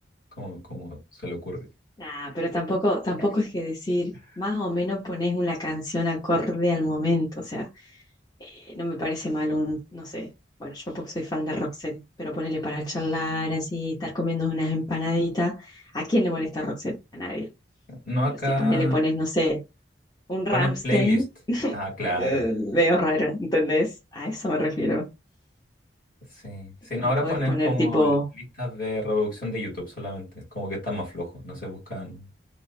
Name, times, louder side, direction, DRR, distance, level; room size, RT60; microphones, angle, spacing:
voice 1, 0.4-1.7 3.2-3.3 17.9-19.0 20.5-21.2 21.7-22.4 26.4-28.1 28.6-32.2, left 1 dB, 50° left, 2.2 m, -29 dB
voice 2, 2.0-7.7 8.4-10.3 10.6-17.5 18.6-19.6 20.3-21.8 22.1-25.1 27.0-28.2, left 1 dB, 20° left, 0.8 m, -26 dB
3.1 x 2.1 x 4.1 m
head